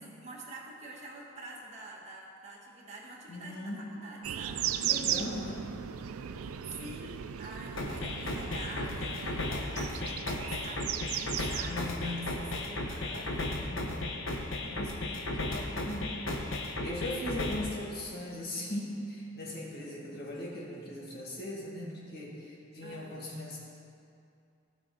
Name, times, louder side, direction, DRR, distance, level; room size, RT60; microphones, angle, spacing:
voice 1, 0.0-4.7 6.7-13.5 22.8-23.2, right 2 dB, 30° right, -4 dB, 1.7 m, -47 dB
voice 2, 3.3-4.1 4.8-5.8 11.6-12.5 13.2-13.9 14.6-16.5 16.8-23.6, left 1 dB, 45° left, -4 dB, 2.1 m, -39 dB
sound 1, 4.2-12.7, right 10 dB, 80° right, 0.4 m, -37 dB
sound 2, 7.8-17.8, left 2 dB, 65° left, 1.2 m, -35 dB
18.0 x 6.1 x 3.9 m, 2.5 s
head